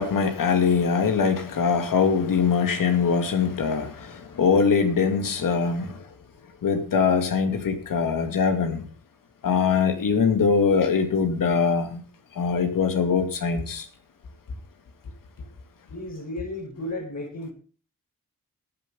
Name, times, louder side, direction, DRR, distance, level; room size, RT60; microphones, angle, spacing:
voice 1, 0.0-6.1 6.6-8.8 9.4-12.0 12.4-13.9, left 5 dB, 85° left, 2.4 m, -22 dB
voice 2, 15.9-17.5, left 1 dB, 60° left, 5.0 m, -34 dB
14.0 x 9.3 x 5.5 m
cardioid pair, 55°, 32 cm